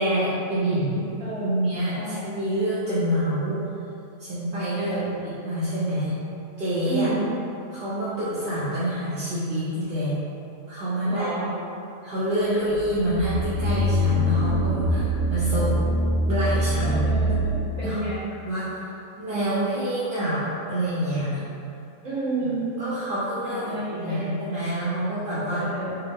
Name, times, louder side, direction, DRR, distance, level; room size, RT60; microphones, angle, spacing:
voice 1, 0.0-1.1 1.4-3.6 4.2-5.0 5.4-6.2 6.6-7.1 7.7-10.1 10.7-11.5 12.0-15.7 16.3-17.3 17.8-18.0 18.4-18.9 19.2-21.4 22.8-25.7, equal, 50° right, -12 dB, 0.8 m, -27 dB
voice 2, 1.2-1.5 1.9-2.2 4.8-5.1 6.8-7.3 11.0-11.5 16.8-18.2 22.0-22.7 23.4-24.3 25.5-26.0, right 2 dB, 30° right, -10 dB, 1.2 m, -30 dB
sound 1, 12.7-17.8, equal, 75° right, 1.0 m, -24 dB
4.5 x 2.0 x 3.4 m, 2.7 s
omnidirectional pair, 1.4 m